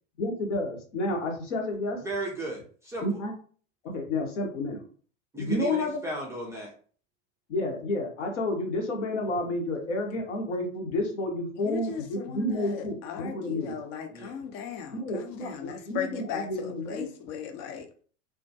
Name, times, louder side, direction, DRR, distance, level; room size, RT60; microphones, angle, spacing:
voice 1, 0.2-2.0 3.0-3.3 3.8-4.8 5.3-6.0 7.5-13.8 14.9-17.1, left 2 dB, 70° left, 2 dB, 0.9 m, -30 dB
voice 2, 2.0-3.0 5.3-6.7 14.1-14.4 15.5-15.6, right 2 dB, 10° right, -3 dB, 0.3 m, -35 dB
voice 3, 11.6-17.9, left 7 dB, 45° left, 5 dB, 0.6 m, -37 dB
2.3 x 2.1 x 2.7 m, 0.43 s
figure-of-eight pair, 80°, 38 cm